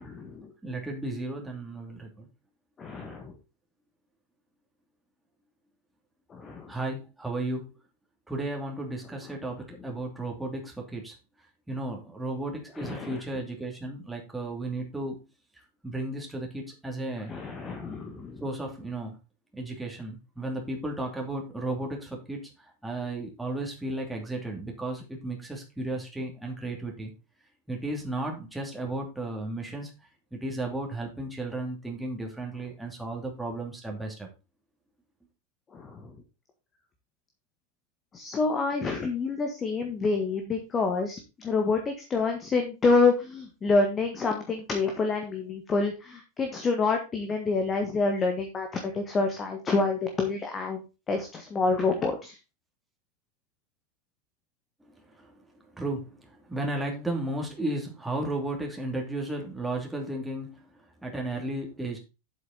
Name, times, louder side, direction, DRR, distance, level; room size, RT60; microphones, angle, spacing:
voice 1, 0.0-0.5 2.8-3.3 6.3-6.7 12.8-13.2 17.3-18.4 35.7-36.1 38.1-52.4, left 3 dB, 20° left, 1.6 m, -27 dB
voice 2, 0.6-2.3 6.7-7.8 8.3-11.1 11.7-15.2 15.8-17.3 18.4-19.2 19.5-27.1 27.7-29.9 30.3-34.3 54.8-55.4 55.7-60.7 61.0-62.0, right 2 dB, 5° right, 2.7 m, -34 dB
8.0 x 7.8 x 4.0 m
figure-of-eight pair, 90°, 0 cm